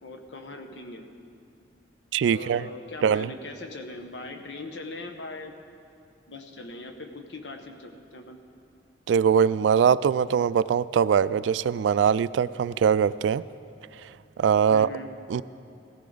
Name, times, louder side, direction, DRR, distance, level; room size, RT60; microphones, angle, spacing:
voice 1, 0.0-1.0 2.3-5.5 6.3-8.4 14.7-15.1, left 2 dB, 80° left, 5 dB, 1.1 m, -40 dB
voice 2, 2.1-2.6 3.0-3.3 9.1-13.4 14.4-14.9 15.3-15.4, right 7 dB, 85° right, 17 dB, 0.3 m, -22 dB
16.5 x 15.0 x 3.9 m, 2.6 s
head